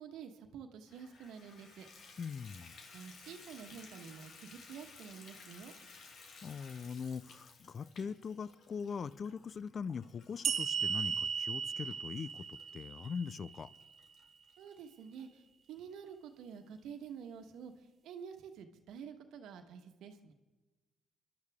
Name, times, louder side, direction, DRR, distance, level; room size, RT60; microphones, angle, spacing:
voice 1, 0.0-1.9 2.9-5.7 14.6-15.4 15.7-17.7 18.0-20.3, right 7 dB, 85° right, 6 dB, 1.3 m, -49 dB
Water tap faucet / Bathtub (filling or washing), 0.9-15.2 15.8-15.9 16.4-16.5 16.8-16.9, left 4 dB, 65° left, 2.0 m, -57 dB
voice 2, 2.2-2.7 6.4-13.7, left 6 dB, 45° left, 18 dB, 0.5 m, -41 dB
sound 1, 10.4-13.8, right 7 dB, 55° right, 0.6 m, -36 dB
28.0 x 11.5 x 3.6 m, 1.2 s
cardioid pair, 90°, 0 cm